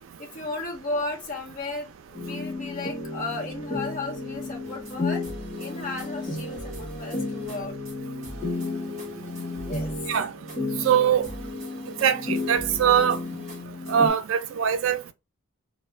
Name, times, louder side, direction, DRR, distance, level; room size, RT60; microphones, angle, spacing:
voice 1, 0.2-5.2 5.6-7.7 9.6-9.9, left 2 dB, 40° left, 0.8 m, -34 dB
sound 1, 2.1-14.1, left 3 dB, 5° left, 1.3 m, -33 dB
sound 2, 4.6-5.0 5.2-7.6 7.9-8.0 8.2-10.6 10.9-11.0 11.2-14.0, right 2 dB, 35° right, 1.1 m, -43 dB
voice 2, 10.8-11.3 12.0-13.2 13.9-15.1, right 8 dB, 65° right, 0.3 m, -22 dB
2.5 x 2.0 x 3.2 m
head